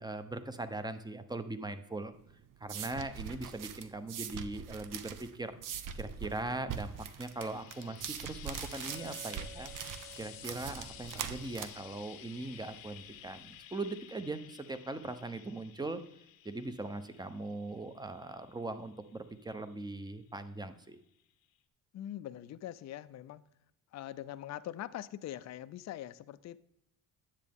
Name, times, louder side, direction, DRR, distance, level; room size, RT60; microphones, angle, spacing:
voice 1, 0.0-2.1 2.6-5.5 5.9-9.7 10.1-16.0 16.4-21.0, right 2 dB, 10° right, 0.8 m, -40 dB
sound 1, 2.2-13.5, right 8 dB, 60° right, 0.8 m, -43 dB
Frying (food), 6.9-20.2 21.2-21.3, left 12 dB, 80° left, 0.8 m, -53 dB
Chink clink, 8.9-12.9, right 7 dB, 30° right, 1.3 m, -56 dB
voice 2, 21.9-23.4 23.9-26.6, left 12 dB, 50° left, 0.5 m, -43 dB
10.0 x 7.4 x 3.6 m
cardioid pair, 90°, 35 cm